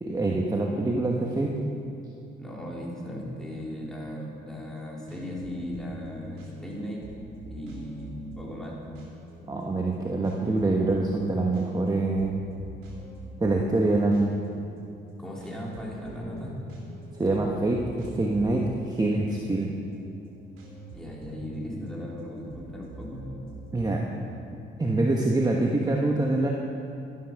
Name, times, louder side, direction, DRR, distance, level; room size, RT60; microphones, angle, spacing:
voice 1, 0.0-1.5 9.5-12.4 13.4-14.4 17.2-19.7 23.7-24.0 24.8-26.5, right 2 dB, 20° right, -1 dB, 1.2 m, -25 dB
voice 2, 2.4-7.0 7.5-8.8 15.2-16.6 20.9-23.3, left 1 dB, 5° left, -4 dB, 3.4 m, -37 dB
sound 1, 4.7-24.3, right 2 dB, 85° right, 3.0 m, -46 dB
12.0 x 11.5 x 5.8 m, 2.7 s
cardioid pair, 90°, 20 cm